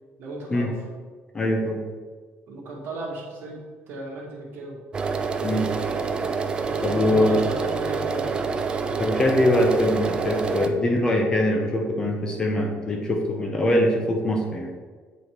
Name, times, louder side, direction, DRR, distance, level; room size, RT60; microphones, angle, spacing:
voice 1, 0.2-0.7 2.5-3.6 3.9-4.8 6.7-8.3, right 2 dB, 55° right, -3 dB, 1.9 m, -35 dB
voice 2, 1.3-1.8 5.4-5.7 6.8-7.4 9.0-14.7, left 1 dB, 20° left, 2 dB, 0.7 m, -23 dB
sound 1, 4.9-10.7, right 5 dB, 20° right, 0.4 m, -27 dB
8.1 x 4.1 x 4.5 m, 1.5 s
cardioid pair, 175°, 4 cm